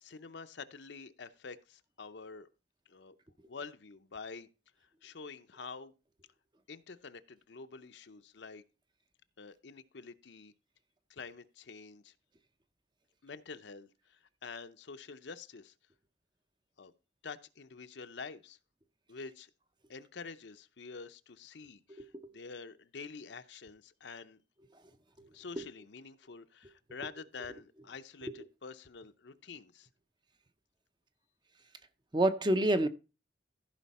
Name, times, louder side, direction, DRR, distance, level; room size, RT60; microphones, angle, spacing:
voice 1, 0.0-2.5 2.9-3.2 3.4-4.5 4.8-5.9 6.7-8.6 9.4-10.5 11.1-12.1 13.2-15.7 16.8-16.9 17.2-18.6 19.1-19.5 19.9-24.4 25.3-29.9, left 4 dB, 70° left, 0.7 m, -47 dB
voice 2, 22.0-22.3 25.2-25.3 25.6-25.7 32.1-32.9, right 1 dB, 25° right, 0.6 m, -28 dB
14.5 x 5.1 x 4.2 m
head